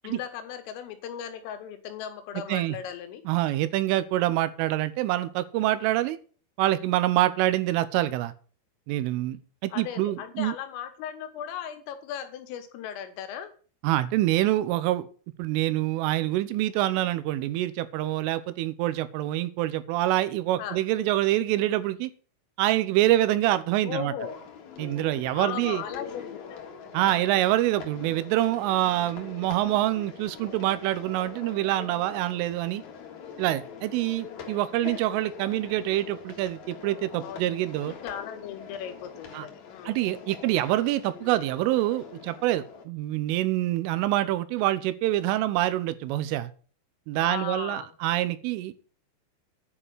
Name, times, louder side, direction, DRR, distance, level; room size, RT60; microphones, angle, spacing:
voice 1, 0.0-3.2 9.7-13.5 20.6-20.8 23.8-24.4 25.4-27.4 37.2-40.0 47.2-47.9, left 9 dB, 85° left, 4.0 m, -37 dB
voice 2, 3.3-6.2 6.6-8.3 8.9-10.5 13.8-15.1 15.4-22.1 22.6-24.1 24.8-25.8 26.9-32.8 33.4-37.9 39.3-39.5 39.9-46.5 47.1-48.7, right 15 dB, 85° right, 3.3 m, -26 dB
sound 1, 24.2-42.8, left 6 dB, 60° left, 2.0 m, -43 dB
9.7 x 5.5 x 8.1 m
omnidirectional pair, 5.7 m